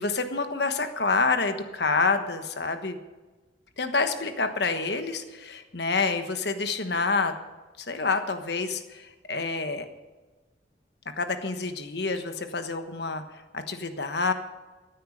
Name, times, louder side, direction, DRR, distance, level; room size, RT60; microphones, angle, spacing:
voice 1, 0.0-3.0 3.8-7.3 7.8-9.9 11.2-14.3, left 4 dB, 65° left, 8 dB, 1.3 m, -28 dB
15.0 x 9.1 x 6.7 m, 1.2 s
head